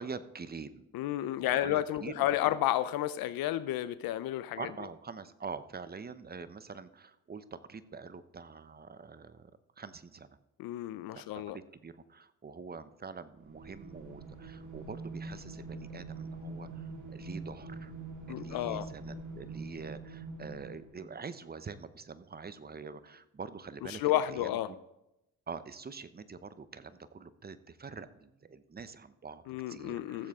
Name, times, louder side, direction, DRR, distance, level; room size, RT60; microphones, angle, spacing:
voice 1, 0.0-0.9 1.4-2.4 4.6-9.5 9.8-10.4 11.1-17.9 18.3-24.8 25.5-30.3, right 5 dB, 25° right, 13 dB, 0.8 m, -45 dB
voice 2, 0.9-4.7 10.6-11.6 18.3-18.9 23.9-24.7 29.5-30.3, left 13 dB, 85° left, 14 dB, 0.5 m, -31 dB
sound 1, 13.4-21.1, right 3 dB, 55° right, 2.8 m, -44 dB
15.0 x 7.3 x 3.6 m, 0.88 s
cardioid pair, 70°, 35 cm